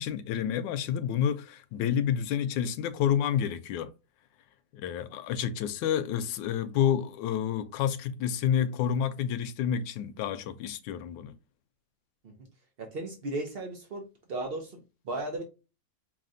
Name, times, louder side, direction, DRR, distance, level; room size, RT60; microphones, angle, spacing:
voice 1, 0.0-3.9 4.7-11.3, left 9 dB, 80° left, 1.2 m, -29 dB
voice 2, 12.8-15.4, right 2 dB, 70° right, 0.5 m, -36 dB
4.9 x 2.9 x 2.5 m
omnidirectional pair, 2.1 m